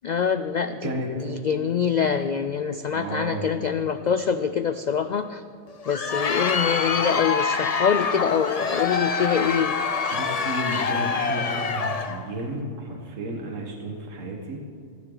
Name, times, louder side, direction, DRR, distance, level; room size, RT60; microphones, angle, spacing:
voice 1, 0.0-5.4 5.9-9.8, left 7 dB, 85° left, 10 dB, 0.4 m, -25 dB
voice 2, 2.9-3.5 10.1-14.6, right 2 dB, 75° right, 1 dB, 1.7 m, -32 dB
Crowd, 5.7-12.2, left 5 dB, 40° left, 0.6 m, -26 dB
26.5 x 10.0 x 3.9 m, 2.4 s
omnidirectional pair, 1.3 m